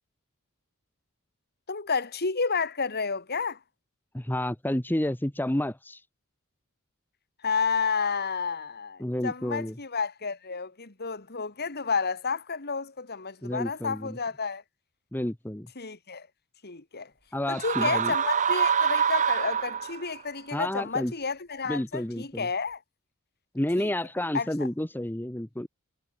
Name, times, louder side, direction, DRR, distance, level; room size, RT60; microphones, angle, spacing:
voice 1, 1.7-3.6 7.4-14.6 15.8-16.3 16.6-17.1 17.5-22.8 23.8-23.9 24.3-24.5, left 5 dB, 50° left, 2.2 m, -31 dB
voice 2, 4.1-6.0 9.0-9.8 13.4-14.2 15.1-15.7 17.3-18.1 20.5-21.1 21.7-22.5 23.5-25.7, left 1 dB, 10° left, 1.0 m, -30 dB
sound 1, 17.5-20.2, right 7 dB, 35° right, 0.8 m, -25 dB
head